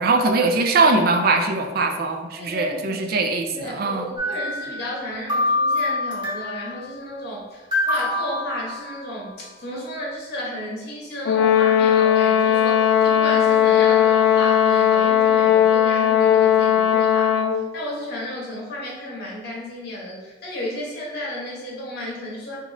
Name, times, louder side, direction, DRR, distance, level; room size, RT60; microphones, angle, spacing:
voice 1, 0.0-4.1, right 3 dB, 55° right, 5 dB, 0.4 m, -21 dB
voice 2, 2.4-3.0 3.5-22.6, left 1 dB, 60° left, -4 dB, 1.2 m, -33 dB
sound 1, 4.2-5.0 5.3-6.7 7.7-9.3, left 2 dB, 25° right, 1.4 m, -25 dB
Brass instrument, 11.3-17.6, left 9 dB, 80° left, 0.3 m, -17 dB
4.1 x 2.7 x 3.4 m, 1.2 s
head